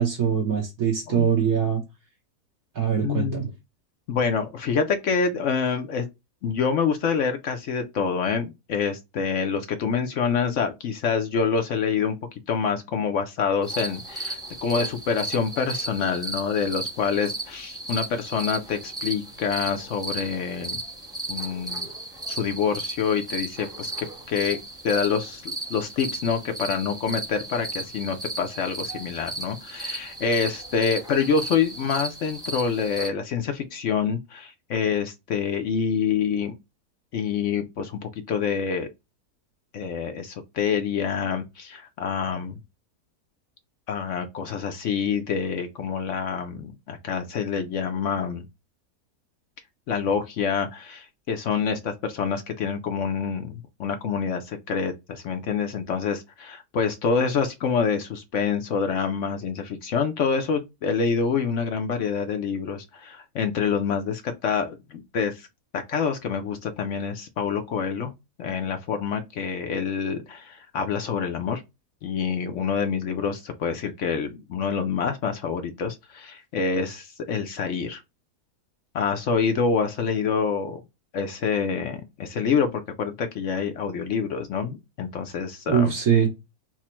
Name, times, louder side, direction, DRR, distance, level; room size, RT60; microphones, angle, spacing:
voice 1, 0.0-1.8 2.7-3.5 85.7-86.3, right 8 dB, 65° right, 1.3 m, -22 dB
voice 2, 3.0-3.5 4.1-6.1 6.4-12.2 12.5-20.8 21.3-21.9 22.3-24.6 24.8-36.5 37.1-38.9 39.7-42.6 43.9-48.5 49.9-65.5 65.7-68.1 68.4-71.6 72.0-78.0 78.9-80.8 81.1-85.9, left 6 dB, 65° left, 0.8 m, -26 dB
sound 1, 13.6-33.1, right 2 dB, 5° right, 0.4 m, -35 dB
5.9 x 2.1 x 4.3 m
omnidirectional pair, 1.7 m